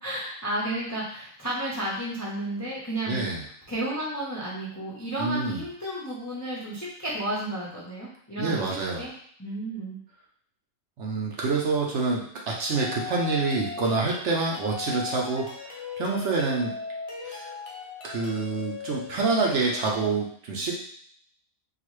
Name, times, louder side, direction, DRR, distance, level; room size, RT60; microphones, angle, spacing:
voice 1, 0.0-3.2 3.7-9.1 9.4-10.0, right 1 dB, 20° left, -6 dB, 0.4 m, -32 dB
voice 2, 3.1-3.4 5.2-5.6 8.4-9.1 11.0-15.5 16.0-16.7 17.2-17.5 18.0-20.8, right 3 dB, 60° right, -2 dB, 0.8 m, -27 dB
sound 1, 12.7-20.1, left 5 dB, 55° left, 0.8 m, -38 dB
3.9 x 2.4 x 3.1 m, 0.62 s
omnidirectional pair, 1.5 m